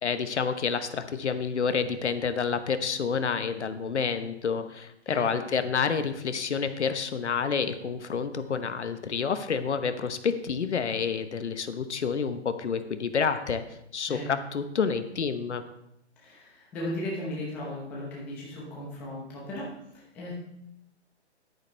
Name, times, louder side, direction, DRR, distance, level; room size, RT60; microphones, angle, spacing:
voice 1, 0.0-13.6 13.9-15.6, left 6 dB, 75° left, 10 dB, 1.0 m, -29 dB
voice 2, 5.1-5.5 14.1-14.3 16.2-20.4, left 1 dB, 5° left, -5 dB, 0.8 m, -36 dB
10.5 x 9.0 x 3.3 m, 0.79 s
hypercardioid pair, 165°, 35 cm